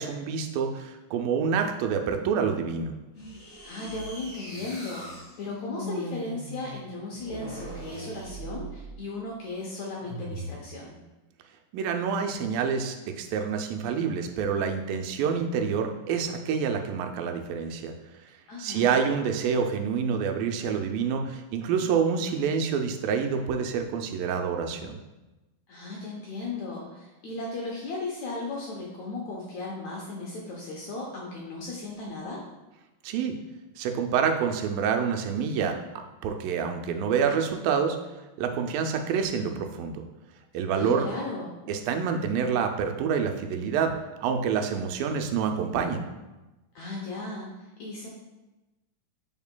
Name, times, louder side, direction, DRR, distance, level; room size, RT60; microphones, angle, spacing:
voice 1, 0.0-2.9 11.7-17.9 18.6-25.0 33.0-33.4 33.8-35.8 36.2-38.0 38.4-40.0 40.5-41.1 41.7-43.9 44.2-46.0, right 6 dB, 85° right, 5 dB, 2.3 m, -27 dB
sound 1, 3.1-9.1 10.0-10.6, right 1 dB, 40° left, 1.0 m, -40 dB
voice 2, 3.6-11.0 18.5-18.9 25.7-32.4 40.7-41.5 46.8-47.5 47.8-48.1, left 3 dB, 70° left, -3 dB, 1.8 m, -36 dB
7.1 x 6.3 x 2.2 m, 1.1 s
omnidirectional pair, 4.0 m